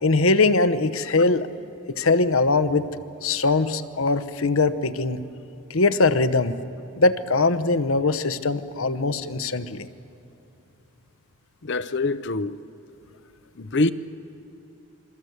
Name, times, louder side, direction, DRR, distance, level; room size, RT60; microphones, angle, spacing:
voice 1, 0.0-1.5 1.9-2.9 3.2-5.2 5.7-6.5 6.9-9.9, left 3 dB, 70° left, 1.0 m, -21 dB
voice 2, 11.6-12.6 13.6-13.9, left 2 dB, 50° left, 0.7 m, -24 dB
28.0 x 24.0 x 8.1 m
head